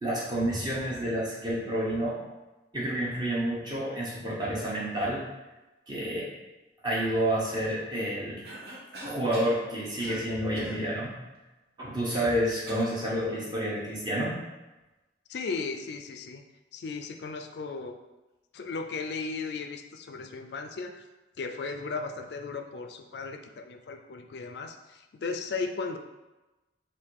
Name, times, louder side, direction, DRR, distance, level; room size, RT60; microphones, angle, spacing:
voice 1, 0.0-2.2 2.7-5.2 5.9-6.3 6.8-8.4 9.0-11.2 11.8-14.4, right 1 dB, 25° right, -6 dB, 1.0 m, -29 dB
Cough, 8.4-9.6 10.0-10.3 10.5-10.8 12.1-13.0, right 1 dB, 60° right, 0.8 m, -42 dB
voice 2, 15.3-16.4 16.7-18.0 18.5-21.0 21.4-26.0, left 4 dB, 70° left, 7 dB, 0.4 m, -36 dB
3.5 x 2.6 x 4.6 m, 1.1 s
head